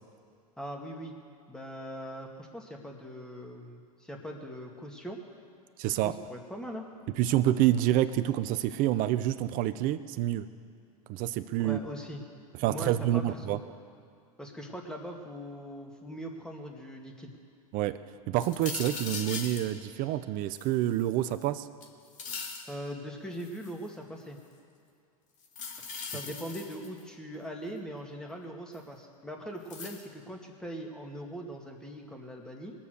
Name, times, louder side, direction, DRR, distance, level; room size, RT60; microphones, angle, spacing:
voice 1, 0.6-1.1 1.5-5.2 6.0-6.9 11.6-12.2 12.6-13.6 14.4-17.3 22.7-24.4 26.1-32.7, equal, 5° left, 1 dB, 2.2 m, -41 dB
voice 2, 5.8-6.2 7.2-10.5 11.1-11.8 12.6-13.6 17.7-18.0 18.3-21.7, right 13 dB, 45° right, 13 dB, 0.7 m, -27 dB
sound 1, 18.4-19.7 20.5-21.4 21.8-22.7 23.4-23.8 25.4-27.0 28.7-28.8 29.7-30.0, left 5 dB, 40° left, 2.1 m, -40 dB
21.0 x 7.2 x 6.6 m, 2.3 s
hypercardioid pair, 100°, 19 cm